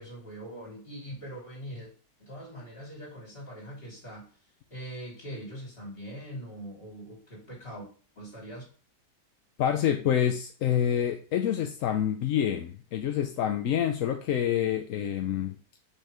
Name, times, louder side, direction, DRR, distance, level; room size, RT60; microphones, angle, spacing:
voice 1, 0.0-1.9 2.2-4.3 4.7-7.9 8.2-8.6, equal, 35° left, -3 dB, 3.6 m, -42 dB
voice 2, 9.6-15.6, left 10 dB, 65° left, 6 dB, 0.9 m, -27 dB
6.4 x 6.4 x 3.3 m, 0.40 s
omnidirectional pair, 1.8 m